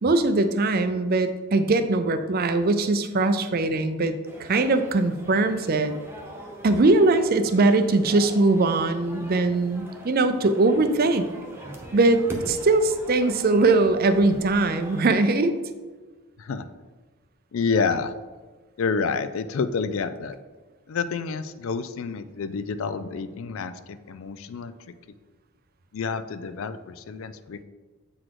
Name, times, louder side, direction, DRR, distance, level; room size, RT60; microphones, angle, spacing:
voice 1, 0.0-5.9 6.6-11.3 11.9-15.6, right 2 dB, 40° right, 9 dB, 0.4 m, -21 dB
sound 1, 4.2-15.1, right 1 dB, 10° right, 0.8 m, -42 dB
voice 2, 17.5-18.1 18.8-20.4 20.9-24.9 25.9-27.6, left 5 dB, 60° left, 12 dB, 0.4 m, -29 dB
7.5 x 4.1 x 4.7 m, 1.3 s
head